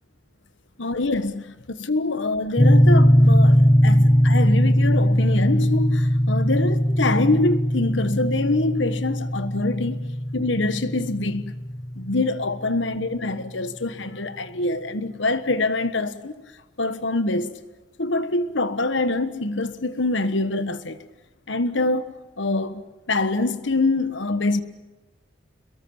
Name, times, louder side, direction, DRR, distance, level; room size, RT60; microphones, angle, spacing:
voice 1, 0.8-10.0 10.3-11.4 12.0-16.4 16.8-17.5 18.0-21.0 21.5-22.8 23.1-24.6, left 2 dB, 75° left, 1.3 m, -25 dB
sound 1, 2.6-12.7, equal, 20° left, 1.0 m, -19 dB
29.0 x 22.5 x 7.2 m
head